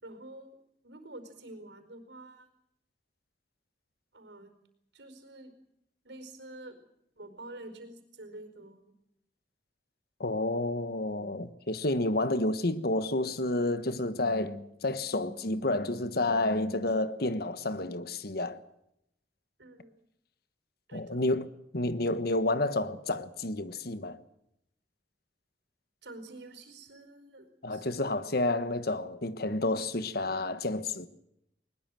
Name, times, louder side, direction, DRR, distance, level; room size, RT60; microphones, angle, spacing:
voice 1, 0.0-0.6 0.8-2.5 4.1-4.5 4.9-5.5 6.0-6.8 7.2-8.8 19.6-19.9 20.9-21.2 26.0-28.1, right 2 dB, 80° right, 4.7 m, -48 dB
voice 2, 10.2-18.6 20.9-24.2 27.6-31.1, left 2 dB, 60° left, 1.4 m, -30 dB
21.0 x 21.0 x 7.7 m
head